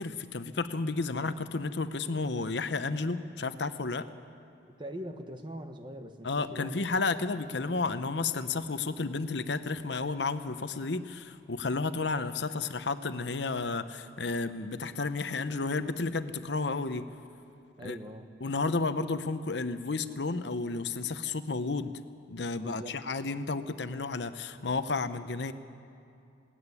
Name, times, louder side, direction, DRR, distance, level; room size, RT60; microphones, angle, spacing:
voice 1, 0.0-4.0 6.2-17.0 17.8-18.0 18.4-21.9 22.3-25.5, left 3 dB, 65° left, 11 dB, 0.9 m, -32 dB
voice 2, 4.8-6.9 17.8-18.3 22.6-23.0, equal, 25° right, 6 dB, 1.3 m, -42 dB
20.0 x 18.0 x 9.8 m, 2.6 s
head